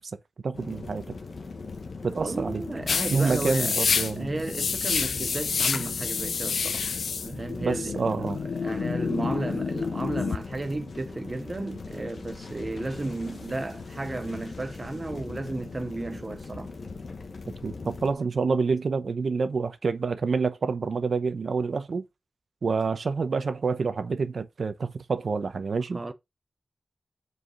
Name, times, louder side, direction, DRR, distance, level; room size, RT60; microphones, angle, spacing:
voice 1, 0.4-1.1 2.0-2.6 3.1-4.3 7.6-8.4 17.6-22.0 22.6-26.0, right 4 dB, 60° right, 0.7 m, -27 dB
sound 1, 0.5-18.1, left 4 dB, 60° left, 1.2 m, -40 dB
voice 2, 2.2-3.8 4.2-6.9 7.2-16.7 25.9-26.1, right 2 dB, 25° right, 0.6 m, -33 dB
sound 2, 2.9-10.4, left 6 dB, 80° left, 0.3 m, -28 dB
4.9 x 4.8 x 5.5 m
wide cardioid pair, 150°, 0 cm